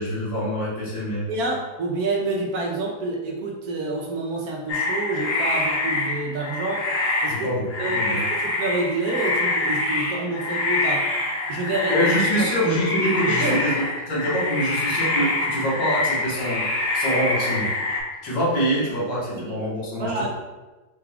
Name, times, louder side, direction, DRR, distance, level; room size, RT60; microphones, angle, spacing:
voice 1, 0.0-1.3 7.3-7.6 7.9-8.2 11.9-13.7 14.1-16.6 16.9-17.7 18.2-20.3, equal, 90° left, -7 dB, 2.1 m, -25 dB
voice 2, 1.3-6.9 7.2-7.5 7.8-11.1 11.5-12.1 12.4-12.5 13.3-13.6 19.4-19.6 20.0-20.3, right 2 dB, 65° right, -1 dB, 1.1 m, -28 dB
sound 1, 4.7-18.0, left 2 dB, 60° left, 0.6 m, -25 dB
5.9 x 2.3 x 3.3 m, 1.2 s
omnidirectional pair, 1.9 m